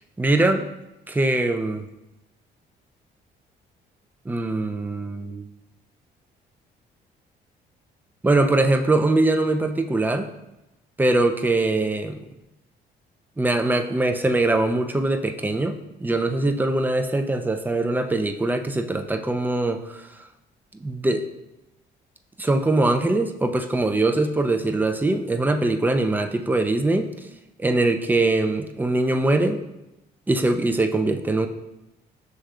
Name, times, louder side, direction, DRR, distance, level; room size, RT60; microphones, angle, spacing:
voice 1, 0.2-0.7 1.1-1.9 4.3-5.5 8.2-10.3 11.0-12.2 13.4-20.2 20.8-21.2 22.4-27.1 27.6-29.6 30.3-31.5, right 2 dB, 10° right, 6 dB, 0.4 m, -22 dB
6.4 x 3.2 x 2.4 m, 0.93 s
supercardioid pair, 75°, 19 cm